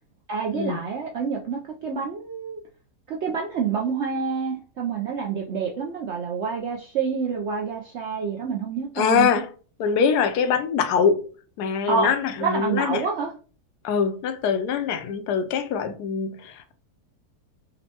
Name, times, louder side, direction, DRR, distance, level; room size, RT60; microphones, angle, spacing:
voice 1, 0.3-2.6 3.1-9.4 11.9-12.1 12.4-13.3, right 6 dB, 70° right, 0.6 m, -27 dB
voice 2, 9.0-9.5 9.8-11.2 11.6-13.1 13.8-16.8, left 6 dB, 85° left, 1.1 m, -23 dB
5.1 x 2.2 x 2.8 m
omnidirectional pair, 1.7 m